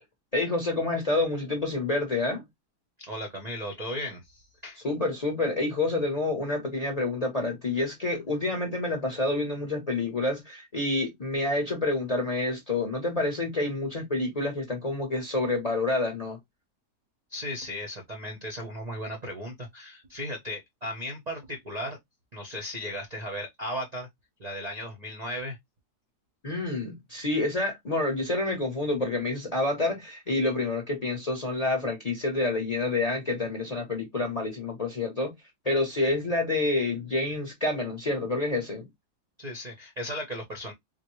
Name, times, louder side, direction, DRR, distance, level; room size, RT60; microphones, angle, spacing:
voice 1, 0.3-2.4 4.8-16.4 26.4-35.3 35.6-38.9, left 2 dB, 35° left, 0.6 m, -28 dB
voice 2, 3.0-4.8 17.3-22.0 22.3-24.1 24.4-25.6 39.4-40.7, equal, 45° right, 0.5 m, -36 dB
3.9 x 2.1 x 3.0 m
omnidirectional pair, 1.7 m